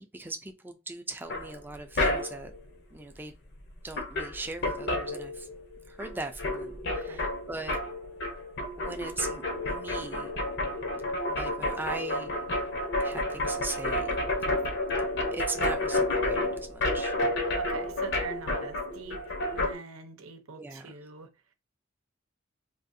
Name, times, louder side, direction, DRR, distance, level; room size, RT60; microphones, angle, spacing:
voice 1, 0.0-2.5 2.9-3.3 3.8-5.5 5.9-7.8 8.8-10.3 11.3-12.4 13.0-14.2 15.3-17.1 20.5-20.9, right 2 dB, 10° right, 0.4 m, -39 dB
sound 1, 1.3-2.6 3.6-3.7 3.9-5.7 6.0-19.7, left 1 dB, 55° left, 0.7 m, -30 dB
voice 2, 6.9-7.2 17.5-19.2 19.5-21.3, right 5 dB, 90° right, 0.7 m, -44 dB
3.4 x 2.4 x 2.6 m
head